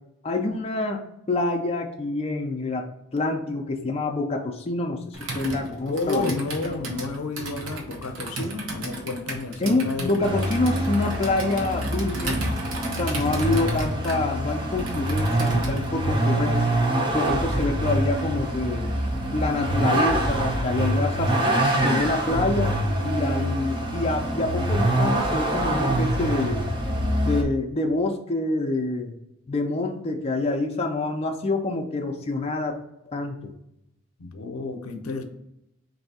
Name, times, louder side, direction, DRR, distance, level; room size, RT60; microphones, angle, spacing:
voice 1, 0.2-2.9 3.1-6.4 6.6-6.7 9.6-12.4 13.0-16.8 17.1-18.9 19.3-21.3 21.8-22.7 23.0-26.7 27.2-29.1 29.5-32.8 33.1-33.5, left 2 dB, 30° left, 2 dB, 0.4 m, -26 dB
Computer keyboard, 5.1-15.9, right 2 dB, 60° right, 0.8 m, -34 dB
voice 2, 5.9-10.2 34.2-35.2, left 3 dB, 85° left, 6 dB, 0.6 m, -31 dB
Vehicle, 10.2-27.4, right 1 dB, 25° right, 0.5 m, -25 dB
3.2 x 2.6 x 4.0 m, 0.84 s
head